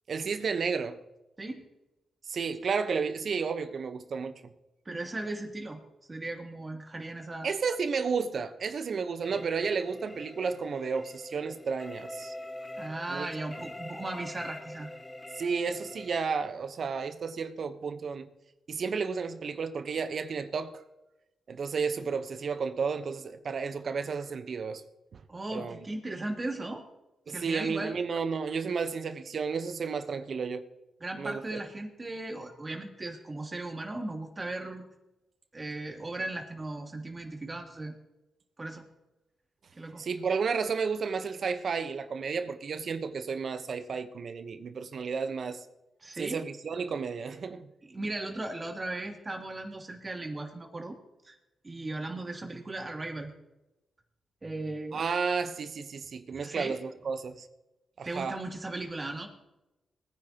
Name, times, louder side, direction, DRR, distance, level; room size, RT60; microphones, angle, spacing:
voice 1, 0.1-1.0 2.3-4.5 7.4-12.3 13.1-13.3 15.3-18.3 18.7-20.8 21.5-24.8 25.1-25.2 25.5-25.8 27.3-30.6 31.2-31.6 40.0-45.7 46.2-47.7 54.9-57.5 58.0-58.4, right 5 dB, 65° right, 1.1 m, -32 dB
voice 2, 4.8-5.8 6.1-7.5 12.8-14.9 25.3-26.8 27.3-28.0 31.0-34.9 35.5-37.9 38.6-38.8 39.7-40.0 46.0-46.4 47.8-50.9 51.2-51.4 51.6-53.3 54.4-55.0 56.3-56.7 58.0-59.3, right 2 dB, 35° right, 2.9 m, -37 dB
sound 1, 9.2-16.1, left 1 dB, 20° left, 1.7 m, -44 dB
20.5 x 10.0 x 3.0 m
supercardioid pair, 45°, 0 cm